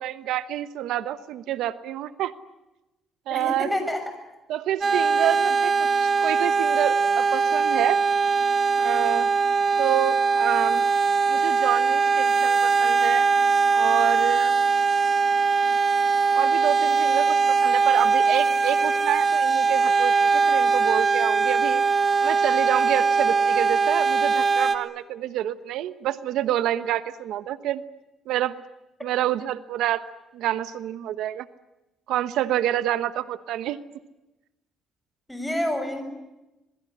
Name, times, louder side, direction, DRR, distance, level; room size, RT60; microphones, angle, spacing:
voice 1, 0.0-2.3 3.3-3.7 4.5-8.0 8.8-9.3 9.8-10.8 11.3-13.3 13.7-14.5 16.3-21.8 22.2-27.8 28.3-28.6 29.0-30.0 30.3-31.5 32.1-33.8, right 13 dB, 80° right, 13 dB, 1.1 m, -28 dB
voice 2, 3.3-4.0 35.3-36.0, left 1 dB, 5° left, 6 dB, 7.0 m, -28 dB
sound 1, 4.8-24.8, right 5 dB, 30° right, 2.2 m, -21 dB
27.0 x 21.0 x 10.0 m, 0.99 s
cardioid pair, 130°, 0 cm